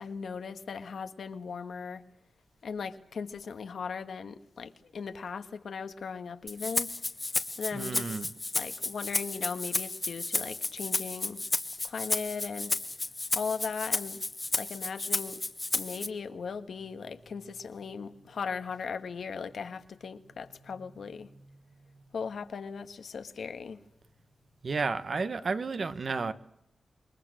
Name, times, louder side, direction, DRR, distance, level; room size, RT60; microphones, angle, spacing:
voice 1, 0.0-2.0 2.6-6.9 7.6-8.2 8.5-11.4 11.8-12.7 13.3-14.2 14.5-15.4 15.7-21.3 22.1-23.8, left 5 dB, 70° left, 9 dB, 1.6 m, -38 dB
Rattle (instrument), 6.5-16.1, left 2 dB, 20° left, 1.4 m, -32 dB
voice 2, 7.7-8.3 24.6-26.3, right 4 dB, 45° right, 12 dB, 1.2 m, -32 dB
27.5 x 23.0 x 6.4 m, 0.80 s
wide cardioid pair, 150°, 0 cm